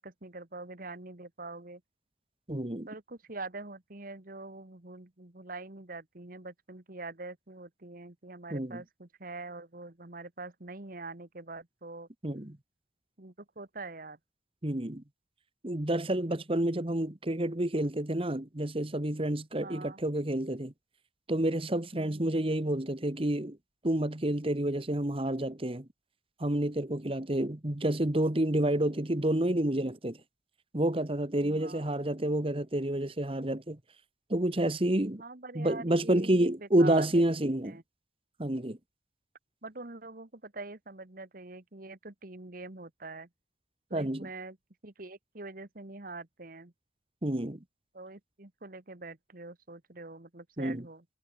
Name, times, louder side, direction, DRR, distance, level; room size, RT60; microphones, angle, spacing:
voice 1, 0.0-1.8 2.9-12.1 13.2-14.2 19.6-20.0 21.9-22.4 31.4-31.9 35.1-37.2 37.6-37.8 39.6-43.3 43.9-44.6 44.8-46.7 47.9-51.0, right 3 dB, 45° right, 1.6 m, -44 dB
voice 2, 2.5-2.9 8.5-8.8 12.2-12.6 14.6-15.0 15.6-20.7 21.3-23.6 23.8-25.9 26.4-30.2 30.7-33.8 34.3-35.2 35.5-37.8 38.4-38.8 43.9-44.3 47.2-47.6 50.6-50.8, right 1 dB, 30° right, 1.4 m, -29 dB
head